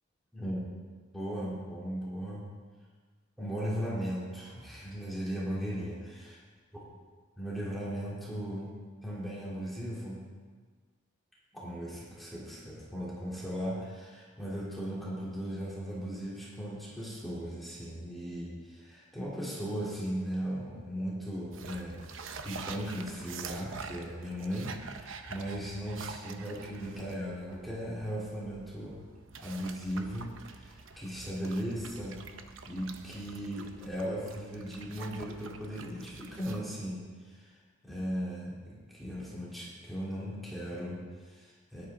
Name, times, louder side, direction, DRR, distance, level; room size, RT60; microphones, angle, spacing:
voice 1, 1.1-2.5 3.4-6.4 7.4-8.7 9.0-10.2 11.5-29.0 29.4-32.2 32.6-37.5 37.8-41.9, equal, ahead, -8 dB, 3.1 m, -37 dB
sound 1, 21.5-36.6, right 5 dB, 75° right, 0.8 m, -46 dB
17.0 x 11.5 x 3.7 m, 1.5 s
head